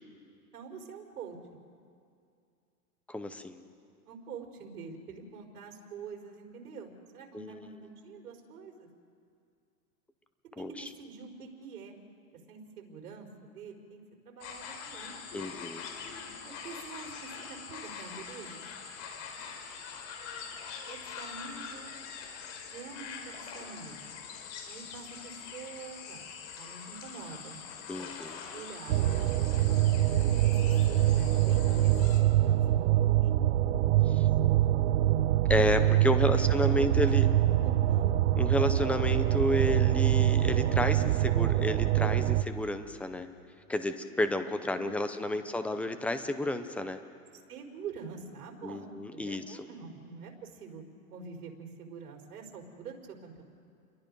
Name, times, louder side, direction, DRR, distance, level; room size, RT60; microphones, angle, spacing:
voice 1, 0.5-1.6 4.1-8.9 10.6-12.0 12.5-14.0 14.2-15.2 16.4-18.7 20.9-21.9 22.7-24.1 24.6-26.3 26.6-27.6 27.9-29.1 30.0-30.8 31.2-33.3 36.1-36.3 36.7-37.1 37.5-38.3 44.7-45.8 47.5-50.8 51.1-53.4, right 5 dB, 75° right, 1 dB, 4.4 m, -46 dB
voice 2, 3.1-3.6 7.3-7.7 10.6-10.9 15.3-15.9 27.9-28.4 34.1-34.3 35.5-37.3 38.4-43.3 43.7-47.0 48.6-49.6, left 1 dB, 5° left, 8 dB, 0.5 m, -31 dB
sound 1, 14.4-32.2, left 6 dB, 50° left, 4.5 m, -44 dB
sound 2, 28.9-42.4, right 13 dB, 55° right, 0.9 m, -25 dB
29.0 x 22.5 x 5.3 m, 2.4 s
hypercardioid pair, 140°, 46 cm